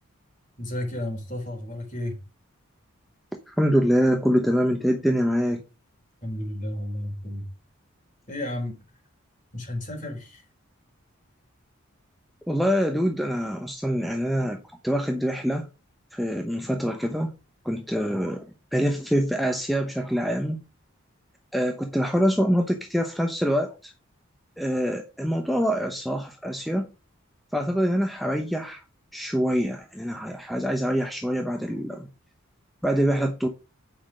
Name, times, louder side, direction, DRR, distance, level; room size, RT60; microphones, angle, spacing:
voice 1, 0.6-2.2 6.2-7.4 8.3-8.7 9.5-10.4 18.1-18.2, left 1 dB, 35° left, 3.8 m, -32 dB
voice 2, 3.5-5.6 12.5-15.7 16.1-17.3 17.6-18.4 18.7-20.6 21.5-23.9 24.6-26.9 27.5-28.8 29.1-32.1 32.8-33.5, equal, ahead, 0.9 m, -25 dB
8.9 x 5.8 x 5.0 m
head